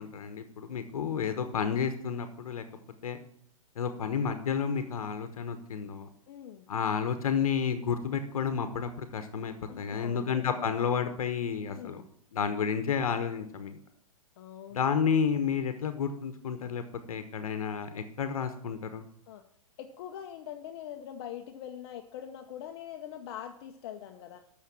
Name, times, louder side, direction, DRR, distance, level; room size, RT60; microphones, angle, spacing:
voice 1, 0.0-2.6 3.0-3.2 3.8-6.1 6.7-12.0 12.3-13.8 14.7-16.8 17.1-19.0, left 7 dB, 70° left, 9 dB, 1.1 m, -31 dB
voice 2, 6.3-6.7 9.7-10.5 11.7-12.0 14.4-14.8 19.3-19.4 19.8-24.4, left 10 dB, 45° left, 6 dB, 0.8 m, -43 dB
8.2 x 6.3 x 7.4 m, 0.69 s
hypercardioid pair, 135°, 19 cm